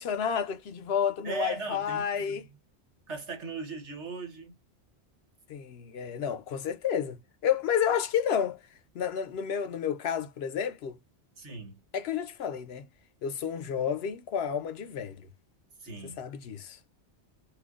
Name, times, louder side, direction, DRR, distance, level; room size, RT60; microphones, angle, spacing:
voice 1, 0.0-2.5 5.5-8.6 8.9-11.0 11.9-12.9 13.2-15.3 16.2-16.8, left 8 dB, 70° left, 0.8 m, -30 dB
voice 2, 1.2-2.4 3.1-4.6 11.4-11.8 15.8-16.2, right 4 dB, 85° right, 1.8 m, -38 dB
4.3 x 2.3 x 2.4 m
omnidirectional pair, 1.1 m